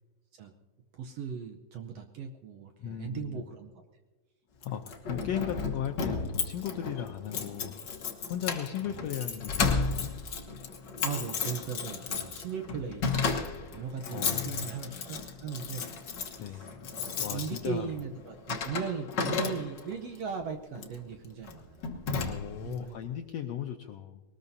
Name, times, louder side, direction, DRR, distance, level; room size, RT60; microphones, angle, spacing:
voice 1, 0.9-3.7 8.8-9.0 11.0-15.9 16.3-21.9 22.6-23.0, right 6 dB, 70° right, 5 dB, 1.6 m, -38 dB
voice 2, 2.8-3.4 4.6-7.7 8.3-10.1 14.1-14.7 16.4-16.7 17.2-17.9 22.2-24.2, left 10 dB, 90° left, 5 dB, 1.5 m, -36 dB
Keys jangling, 4.6-20.0 20.7-21.0 21.5-21.6 21.8-22.7, left 5 dB, 60° left, 1.2 m, -34 dB
21.5 x 19.0 x 2.7 m, 1.2 s
omnidirectional pair, 3.7 m